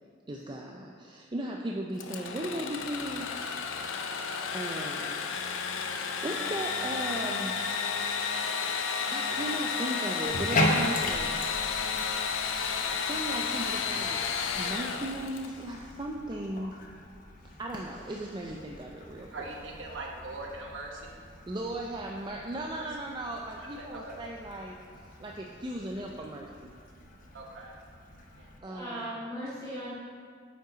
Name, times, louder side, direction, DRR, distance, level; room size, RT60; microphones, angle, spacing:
voice 1, 0.3-3.3 4.5-5.2 5.8-7.6 9.1-11.3 12.9-16.8 17.6-19.5 21.5-24.8 25.2-26.8 28.6-29.2, right 1 dB, 25° right, 0 dB, 0.4 m, -37 dB
Engine / Sawing, 2.0-15.7, left 5 dB, 90° left, 0.5 m, -32 dB
Bathtub (filling or washing), 10.2-28.6, left 1 dB, 45° left, 0.8 m, -38 dB
voice 2, 19.3-21.5 22.7-22.9 23.6-24.2 27.3-27.8 28.2-28.5, right 2 dB, 80° right, -1 dB, 1.1 m, -42 dB
voice 3, 28.6-29.9, equal, 20° left, -11 dB, 2.1 m, -38 dB
8.8 x 5.4 x 3.9 m, 2.1 s
head